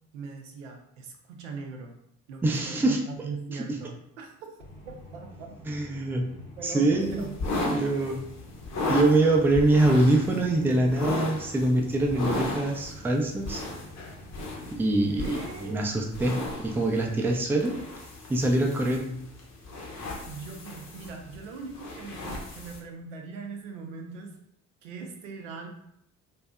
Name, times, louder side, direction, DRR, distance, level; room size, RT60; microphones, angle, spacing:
voice 1, 0.1-1.9 2.3-4.6 4.8-5.6 6.6-7.3 15.1-15.8 20.3-24.3 24.8-25.7, right 4 dB, 85° right, 2 dB, 0.5 m, -40 dB
voice 2, 2.4-3.0 5.7-6.3 6.6-7.3 7.6-8.2 8.9-13.6 14.7-17.8 18.3-19.2, right 2 dB, 5° right, 1 dB, 0.3 m, -24 dB
sound 1, 4.6-15.8, left 1 dB, 90° left, 0.8 m, -47 dB
sound 2, 7.0-22.8, left 2 dB, 45° left, 0.7 m, -36 dB
2.6 x 2.3 x 2.2 m, 0.74 s
figure-of-eight pair, 50°, 37 cm